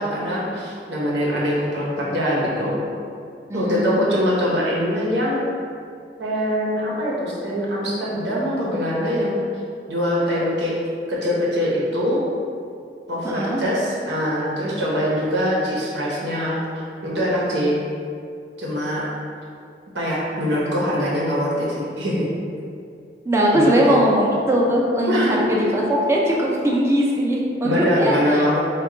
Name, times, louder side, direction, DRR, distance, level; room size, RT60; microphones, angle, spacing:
voice 1, 0.0-2.8 3.5-5.4 6.2-9.4 9.9-10.7 11.1-12.2 13.1-16.6 17.0-17.8 18.6-19.1 19.9-22.3 23.5-24.0 25.1-25.6 27.6-28.6, equal, 85° right, -5 dB, 0.9 m, -23 dB
voice 2, 3.5-4.0 13.2-13.6 23.3-28.5, equal, 15° right, -3 dB, 0.4 m, -20 dB
4.4 x 2.3 x 3.6 m, 2.4 s
head